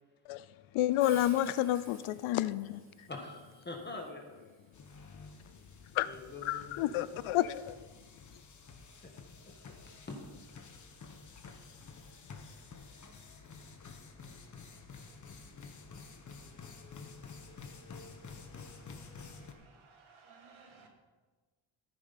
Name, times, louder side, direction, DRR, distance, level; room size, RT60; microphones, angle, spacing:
voice 1, 0.7-2.8 5.9-6.1 6.4-7.8, left 13 dB, 85° left, 0.6 m, -30 dB
Hiss, 1.0-6.6, right 2 dB, 25° right, 3.4 m, -57 dB
voice 2, 3.1-4.5 6.0-7.2 9.0-9.1 9.5-9.8 10.1-10.2 10.5-10.6, left 3 dB, 20° left, 1.5 m, -45 dB
sound 1, 4.7-19.5, left 4 dB, 40° left, 1.3 m, -51 dB
voice 3, 19.0-20.9, right 4 dB, 80° right, 2.9 m, -59 dB
14.5 x 9.8 x 4.2 m
cardioid pair, 140°, 47 cm